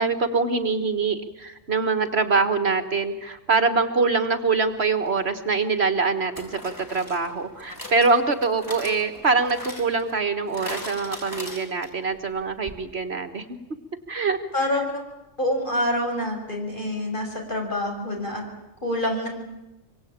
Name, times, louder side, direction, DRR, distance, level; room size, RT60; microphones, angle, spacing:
voice 1, 0.0-13.6 14.1-14.4, right 4 dB, 55° right, 8 dB, 1.8 m, -24 dB
sound 1, 5.1-5.2 6.3-12.1 12.4-12.5 12.7-12.8, equal, 15° left, 5.4 m, -40 dB
voice 2, 14.5-14.9 15.4-18.4 18.8-19.3, left 1 dB, 40° left, 1 dB, 6.5 m, -26 dB
25.0 x 24.5 x 8.7 m, 0.94 s
omnidirectional pair, 1.3 m